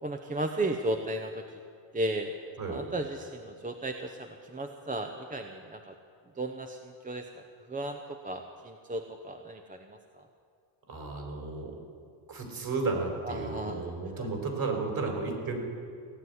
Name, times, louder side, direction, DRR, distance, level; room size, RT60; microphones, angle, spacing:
voice 1, 0.0-1.5 1.9-2.3 2.7-5.9 6.4-10.2 13.2-13.8 14.2-14.3, right 1 dB, 15° right, 5 dB, 0.8 m, -35 dB
voice 2, 2.6-2.9 10.9-11.8 12.3-15.6, right 3 dB, 45° right, 2 dB, 4.5 m, -33 dB
17.0 x 7.8 x 9.6 m, 2.3 s
cardioid pair, 100°, 49 cm